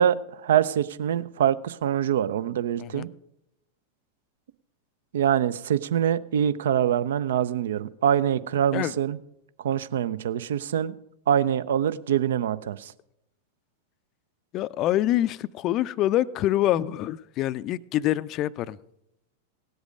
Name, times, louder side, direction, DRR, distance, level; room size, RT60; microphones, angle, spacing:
voice 1, 0.0-3.1 5.1-9.2 9.6-10.9 11.3-12.9, right 9 dB, 60° right, 0.5 m, -24 dB
voice 2, 14.5-18.8, left 13 dB, 35° left, 0.4 m, -25 dB
17.5 x 8.0 x 5.1 m
figure-of-eight pair, 90°, 0 cm